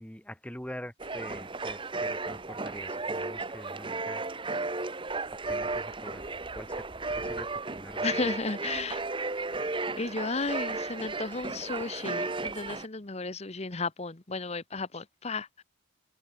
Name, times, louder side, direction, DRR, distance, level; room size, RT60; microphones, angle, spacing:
voice 1, 0.0-4.3 5.4-8.3, equal, 5° left, 1.5 m, -45 dB
sound 1, 1.0-12.9, right 3 dB, 25° right, 1.1 m, -34 dB
voice 2, 8.0-9.0 10.0-15.6, left 3 dB, 30° left, 1.0 m, -34 dB
head